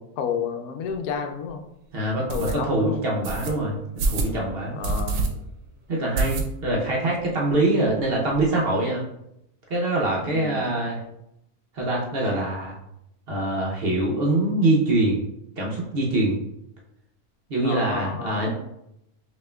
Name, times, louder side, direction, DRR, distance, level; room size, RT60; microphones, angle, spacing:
voice 1, 0.0-1.6 2.3-3.0 4.7-5.3 10.2-10.7 17.6-18.5, left 6 dB, 90° left, 5 dB, 1.1 m, -31 dB
sound 1, 0.9-1.0 1.5-1.6 2.3-2.6 3.2-3.5 4.0-4.3 4.8-5.3 5.6-5.7 6.2-6.8 7.2-7.3 7.5-7.6 7.9-8.5, right 3 dB, 85° right, 1.1 m, -26 dB
voice 2, 1.9-4.8 5.9-9.0 9.7-11.0 11.7-12.8 13.3-15.2 15.6-16.4 17.5-18.5, right 2 dB, 50° right, -3 dB, 0.8 m, -24 dB
5.5 x 2.9 x 2.2 m, 0.83 s
omnidirectional pair, 1.5 m